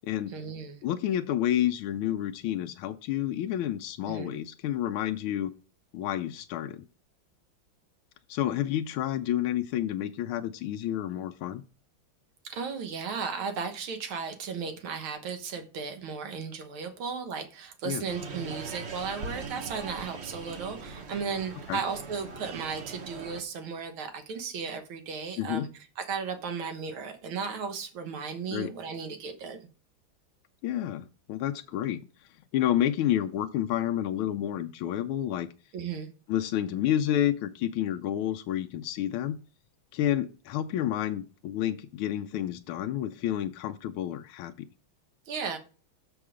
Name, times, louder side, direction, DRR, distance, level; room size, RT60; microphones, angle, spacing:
voice 1, 0.3-0.8 4.1-4.3 12.4-25.7 26.0-29.6 35.7-36.1 45.3-45.6, right 5 dB, 80° right, 7 dB, 2.0 m, -35 dB
voice 2, 0.8-5.5 5.9-6.8 8.3-11.6 17.9-18.0 21.7-21.8 25.4-25.7 28.5-28.7 30.6-32.0 32.5-35.5 36.3-39.4 39.9-44.7, left 11 dB, 90° left, 6 dB, 1.4 m, -29 dB
sound 1, 18.1-23.4, right 4 dB, 45° right, 0.9 m, -40 dB
7.0 x 5.6 x 4.9 m, 0.35 s
omnidirectional pair, 2.3 m